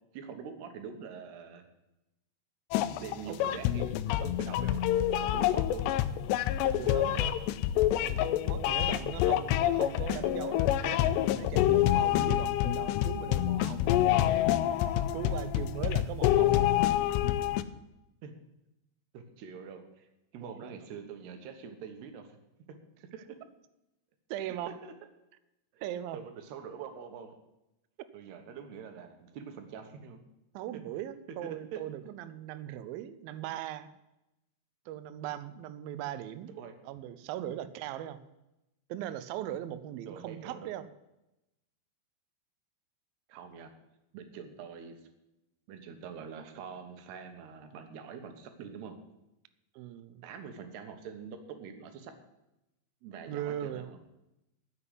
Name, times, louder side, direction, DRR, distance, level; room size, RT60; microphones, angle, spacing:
voice 1, 0.1-1.6 2.9-4.9 5.1-6.0 6.9-7.0 8.4-8.5 10.2-10.3 18.2-18.3 19.1-20.1 20.3-22.4 23.1-23.2 24.7-24.9 25.7-25.8 26.1-27.4 28.1-30.2 30.7-30.8 31.4-31.8 36.5-36.8 40.1-40.7 43.3-43.7 44.1-44.9 45.7-49.0 50.2-52.1 53.0-54.0, right 6 dB, 70° right, 6 dB, 3.3 m, -45 dB
sound 1, 2.7-17.6, left 12 dB, 85° left, 2.7 m, -27 dB
voice 2, 2.9-3.6 6.6-7.3 8.0-14.1 14.7-16.7 20.4-20.7 24.3-24.8 25.8-26.2 30.5-33.9 34.9-36.5 36.9-38.2 38.9-40.9 49.8-50.2 53.3-54.0, right 11 dB, 90° right, 12 dB, 2.1 m, -39 dB
9.7 x 7.8 x 9.6 m, 0.91 s
omnidirectional pair, 5.1 m